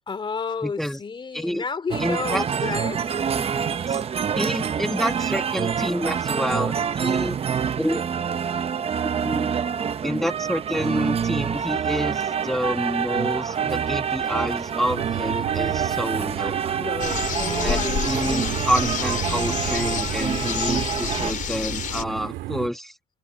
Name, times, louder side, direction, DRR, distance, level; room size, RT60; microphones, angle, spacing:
voice 1, 0.1-3.0 16.8-18.7, left 5 dB, 30° left, 3.0 m, -32 dB
voice 2, 0.6-1.0 1.3-1.6 2.0-2.4 3.3-4.0 4.3-7.4 7.8-8.0 9.0-9.5 10.0-16.6 17.6-17.8 18.0-23.0, equal, ahead, 1.7 m, -28 dB
sound 1, 1.9-21.3, right 7 dB, 35° right, 0.8 m, -26 dB
sound 2, 14.8-22.7, right 16 dB, 90° right, 2.0 m, -33 dB
sound 3, 17.0-22.0, left 9 dB, 50° left, 5.2 m, -29 dB
cardioid pair, 110°, 17 cm